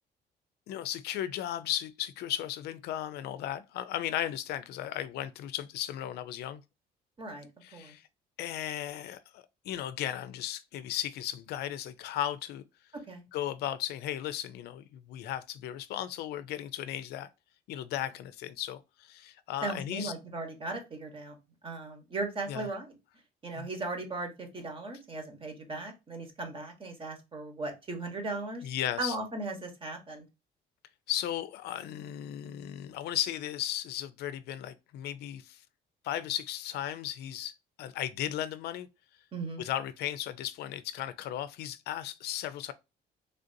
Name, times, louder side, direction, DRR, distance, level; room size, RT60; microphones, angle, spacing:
voice 1, 0.7-6.6 7.6-8.0 8.4-12.6 13.3-17.3 17.7-20.1 22.5-22.7 23.6-23.7 28.6-29.2 31.1-35.6 36.0-38.9 39.6-42.7, left 12 dB, 75° left, 0.4 m, -36 dB
voice 2, 7.2-7.9 13.1-13.2 19.6-21.4 21.6-22.9 23.4-28.7 29.0-30.3 39.3-39.6, right 2 dB, 30° right, 1.1 m, -37 dB
3.3 x 2.5 x 2.6 m
cardioid pair, 110°, 17 cm